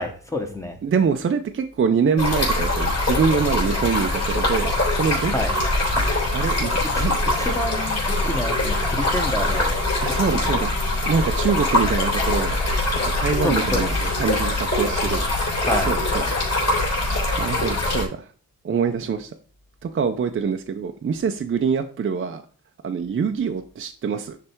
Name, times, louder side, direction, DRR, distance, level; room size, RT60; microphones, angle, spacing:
voice 1, 0.0-0.8 5.3-5.5 6.9-7.1 7.3-9.8 10.3-10.6 13.4-14.1 15.6-15.9, left 1 dB, 10° left, 3 dB, 1.0 m, -28 dB
voice 2, 0.8-5.3 6.3-7.1 10.0-10.7 11.1-12.6 13.2-15.2 15.9-16.4 17.4-18.3 18.6-19.3 19.8-22.4 22.8-24.4, right 6 dB, 35° right, 6 dB, 0.5 m, -24 dB
Stream, 2.2-18.1, left 2 dB, 45° left, 3.1 m, -23 dB
9.7 x 3.3 x 4.5 m, 0.40 s
wide cardioid pair, 155°, 35 cm